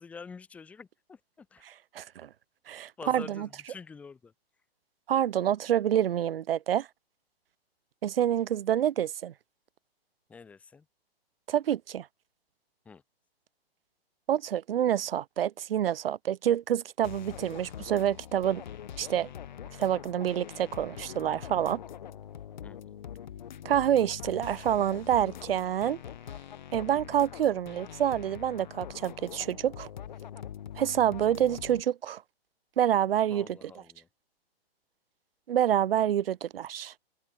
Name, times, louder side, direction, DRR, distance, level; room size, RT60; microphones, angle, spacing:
voice 1, 0.0-1.7 3.0-4.3 10.3-10.9 12.9-13.0 22.6-23.0 33.3-34.1, left 5 dB, 5° left, 2.0 m, -47 dB
voice 2, 1.9-2.3 2.7-3.5 5.1-6.9 8.0-9.3 11.5-12.1 14.3-18.6 19.0-19.3 19.8-21.8 23.6-26.0 26.7-29.9 30.8-32.2 32.8-33.5 35.5-36.9, right 10 dB, 65° right, 0.6 m, -27 dB
sound 1, 17.0-31.8, left 9 dB, 45° left, 1.4 m, -43 dB
hypercardioid pair, 175°, 31 cm